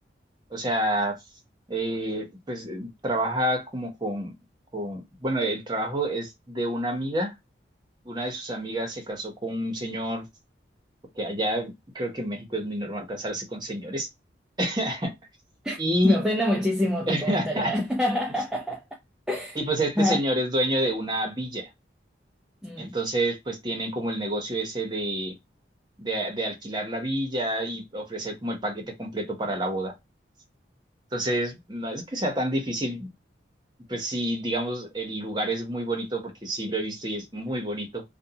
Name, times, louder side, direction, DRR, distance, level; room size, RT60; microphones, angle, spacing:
voice 1, 0.5-1.2 1.7-4.3 4.7-7.3 8.0-10.2 11.2-14.1 14.6-15.1 15.8-16.2 17.1-17.7 19.5-21.7 22.8-25.4 26.0-29.9 31.1-33.1 33.9-38.0, right 1 dB, 25° right, 0.8 m, -28 dB
voice 2, 15.6-18.8 19.3-19.6 20.0-20.2 22.6-23.0, left 1 dB, 5° right, 0.3 m, -26 dB
2.6 x 2.2 x 2.7 m
head